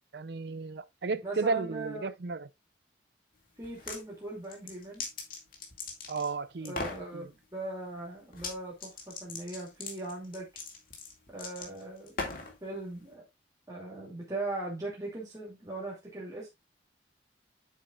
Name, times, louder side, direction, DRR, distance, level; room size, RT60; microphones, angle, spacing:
voice 1, 0.0-2.5 6.1-6.7 7.1-7.3, right 4 dB, 60° right, 0.5 m, -34 dB
voice 2, 1.2-2.1 3.6-5.0 6.6-10.5 11.3-12.1 12.6-13.2 13.7-16.5, right 2 dB, 20° right, 2.5 m, -39 dB
sound 1, 3.6-4.0 4.5-6.3 6.6-7.0 8.3-8.5 8.8-12.5, left 4 dB, 50° left, 2.2 m, -39 dB
8.4 x 7.1 x 2.4 m
head